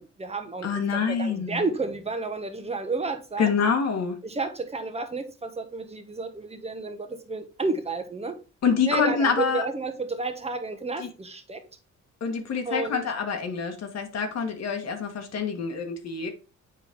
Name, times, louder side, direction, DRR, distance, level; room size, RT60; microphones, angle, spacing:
voice 1, 0.0-3.5 4.2-8.4 8.9-11.6 12.6-13.1, right 3 dB, 20° right, 1.4 m, -31 dB
voice 2, 0.6-1.6 3.4-4.2 8.6-9.6 12.2-16.3, left 6 dB, 60° left, 1.6 m, -26 dB
7.8 x 4.6 x 3.6 m
cardioid pair, 90°, 30 cm